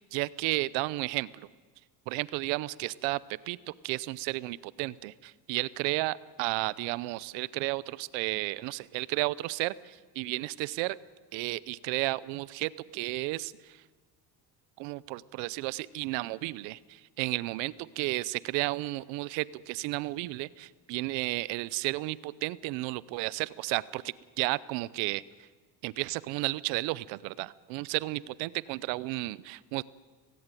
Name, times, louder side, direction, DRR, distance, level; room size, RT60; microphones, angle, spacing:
voice 1, 0.0-1.5 2.1-3.2 3.5-11.0 11.3-13.8 14.8-25.5 25.8-29.8, right 20 dB, 85° right, 20 dB, 0.8 m, -33 dB
17.5 x 17.5 x 9.2 m, 1.3 s
cardioid pair, 115°, 44 cm